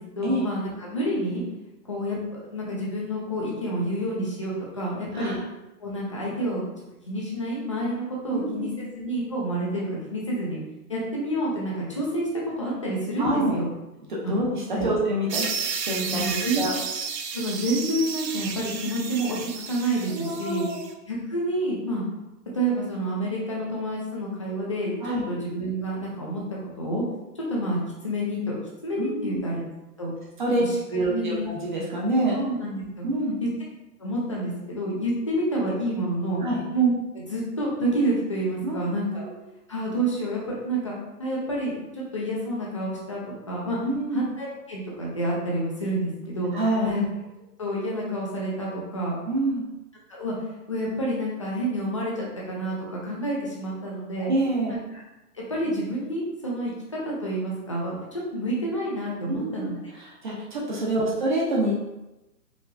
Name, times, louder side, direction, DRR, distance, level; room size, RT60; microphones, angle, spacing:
voice 1, 0.0-1.4 1.9-5.3 5.8-6.6 7.1-10.6 10.9-13.7 14.2-14.3 14.7-14.9 16.0-16.6 17.3-20.6 21.1-22.0 22.5-26.4 26.8-27.0 27.4-29.6 30.0-30.1 30.6-31.5 32.3-33.0 33.4-33.5 34.0-36.4 36.7-39.3 39.7-40.9 41.2-43.2 43.5-43.8 44.1-46.5 46.8-47.0 47.6-49.1 50.2-50.3 50.7-54.3 54.7-55.0 55.3-59.8, right 1 dB, 20° left, -5 dB, 0.5 m, -28 dB
voice 2, 8.3-8.7 13.2-13.6 14.1-16.2 16.6-16.7 20.1-20.9 25.0-25.2 29.0-29.4 30.4-30.6 30.9-32.4 33.0-33.4 36.3-36.6 38.6-38.8 39.1-39.3 43.8-44.2 46.5-46.9 49.3-49.6 54.2-54.7 59.3-59.7 59.9-61.8, right 1 dB, 30° right, -4 dB, 0.7 m, -26 dB
sound 1, 15.3-20.9, right 6 dB, 85° right, 0.8 m, -32 dB
4.7 x 3.0 x 2.5 m, 0.98 s
hypercardioid pair, 160°, 48 cm